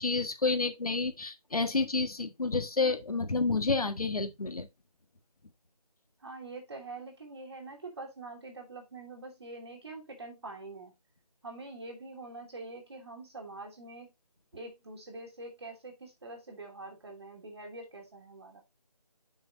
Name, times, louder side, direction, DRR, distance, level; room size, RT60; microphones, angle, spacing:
voice 1, 0.0-4.7, left 3 dB, 65° left, 1.5 m, -29 dB
voice 2, 6.2-10.9 11.4-14.1 14.5-18.6, right 2 dB, 40° right, 2.6 m, -45 dB
8.6 x 6.3 x 2.6 m
figure-of-eight pair, 165°, 20 cm